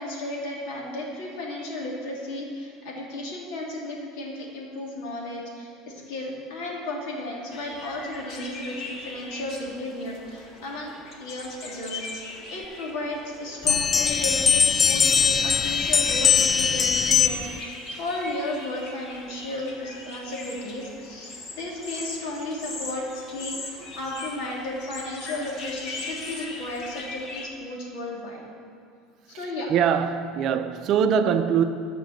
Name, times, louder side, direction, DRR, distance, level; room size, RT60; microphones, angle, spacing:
voice 1, 0.0-10.9 11.2-28.4 29.3-29.7, left 1 dB, 75° left, -2 dB, 2.8 m, -34 dB
sound 1, 7.5-27.5, left 3 dB, 40° left, 1.5 m, -39 dB
sound 2, 13.7-17.6, left 6 dB, 25° left, 0.3 m, -21 dB
voice 2, 29.7-31.6, right 7 dB, 45° right, 8 dB, 0.6 m, -22 dB
12.0 x 6.1 x 7.1 m, 2.5 s
cardioid pair, 150°, 0 cm